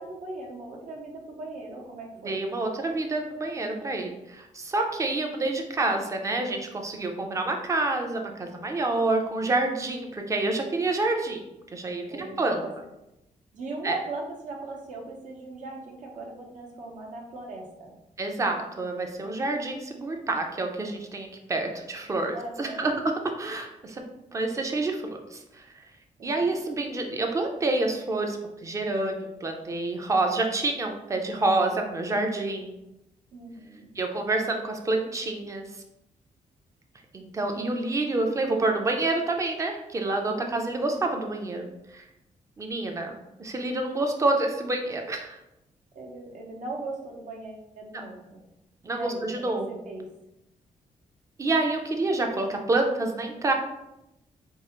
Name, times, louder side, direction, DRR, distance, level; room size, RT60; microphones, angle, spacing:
voice 1, 0.0-2.4 8.7-9.0 12.1-12.7 13.5-17.9 22.3-23.0 26.2-26.5 33.3-33.9 37.6-37.7 40.3-40.9 45.9-48.4 48.9-50.1, right 2 dB, 70° right, -1 dB, 0.9 m, -39 dB
voice 2, 2.2-11.4 11.7-12.6 13.8-14.0 18.2-24.0 24.3-25.8 26.2-32.7 34.0-35.8 37.1-42.1 42.6-45.4 47.9-48.0 48.8-49.8 51.4-53.5, right 2 dB, 25° right, 3 dB, 0.5 m, -28 dB
4.6 x 2.4 x 3.0 m, 0.88 s
wide cardioid pair, 170°, 13 cm